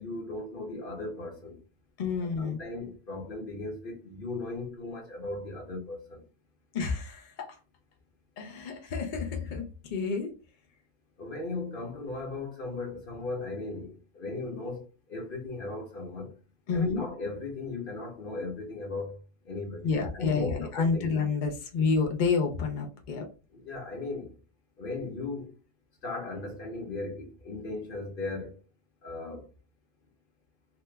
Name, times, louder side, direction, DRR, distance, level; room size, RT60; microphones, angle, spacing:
voice 1, 0.0-1.6 2.2-6.2 11.2-16.4 16.7-19.2 19.4-21.1 23.5-24.3 24.8-25.5 26.0-28.5 29.0-29.5, left 3 dB, 40° left, 1.0 m, -37 dB
voice 2, 2.0-2.6 6.7-7.6 8.4-10.3 16.7-17.0 19.8-23.3, left 5 dB, 85° left, 0.4 m, -29 dB
3.0 x 2.2 x 3.2 m
omnidirectional pair, 1.6 m